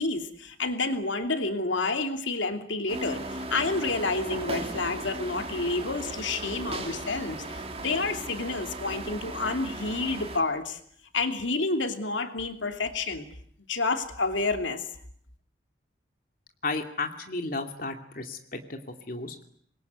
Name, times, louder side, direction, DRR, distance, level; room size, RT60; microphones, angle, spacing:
voice 1, 0.0-10.8 11.1-13.3 13.7-14.8, left 3 dB, 90° left, 6 dB, 2.9 m, -29 dB
sound 1, 2.9-10.4, right 2 dB, 30° right, 3.4 m, -37 dB
voice 2, 16.6-18.4 18.7-18.8 19.1-19.4, left 3 dB, 50° left, 5 dB, 2.6 m, -33 dB
26.5 x 22.0 x 9.5 m, 0.64 s
head